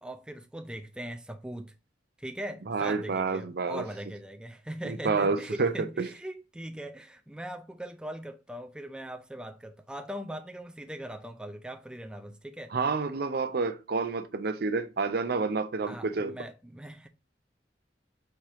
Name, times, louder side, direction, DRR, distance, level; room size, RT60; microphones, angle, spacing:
voice 1, 0.0-1.7 2.2-12.7 15.9-17.1, right 1 dB, 5° right, 0.3 m, -40 dB
voice 2, 2.7-3.8 4.8-5.7 12.7-16.4, right 4 dB, 55° right, 0.5 m, -29 dB
4.3 x 3.4 x 3.5 m
head